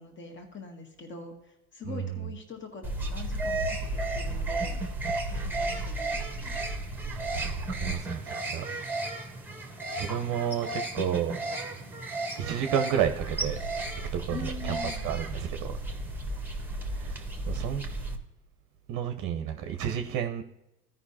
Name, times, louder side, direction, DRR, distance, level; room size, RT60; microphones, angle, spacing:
voice 1, 0.0-4.8 5.3-6.6 14.3-15.1, left 4 dB, 25° left, 3 dB, 2.0 m, -43 dB
sound 1, 2.8-18.2, right 2 dB, 5° right, 1.5 m, -33 dB
voice 2, 7.3-8.6 10.0-11.4 12.4-13.6 14.1-14.8 15.0-15.8 17.0-17.9 18.9-20.4, right 9 dB, 40° right, 6 dB, 0.9 m, -31 dB
16.0 x 5.6 x 2.8 m, 0.91 s
figure-of-eight pair, 65°, 46 cm